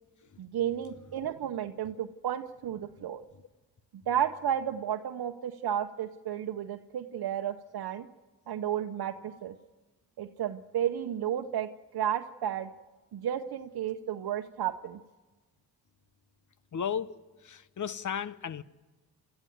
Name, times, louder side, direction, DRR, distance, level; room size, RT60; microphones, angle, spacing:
voice 1, 0.4-3.2 4.1-8.1 8.5-9.5 10.2-12.7 13.1-15.0, right 10 dB, 70° right, 1.0 m, -32 dB
voice 2, 16.7-17.1 17.4-18.6, left 7 dB, 50° left, 1.0 m, -34 dB
29.0 x 13.5 x 9.4 m
cardioid pair, 70°, 38 cm